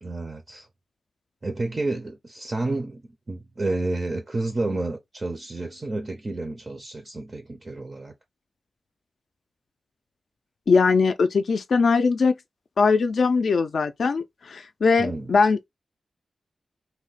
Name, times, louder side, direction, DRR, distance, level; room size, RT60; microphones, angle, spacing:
voice 1, 0.0-0.7 1.4-8.1 15.0-15.3, right 2 dB, 30° right, 0.4 m, -30 dB
voice 2, 10.7-12.3 12.8-15.7, left 4 dB, 60° left, 0.3 m, -21 dB
3.1 x 2.1 x 3.9 m
wide cardioid pair, 180°, 0 cm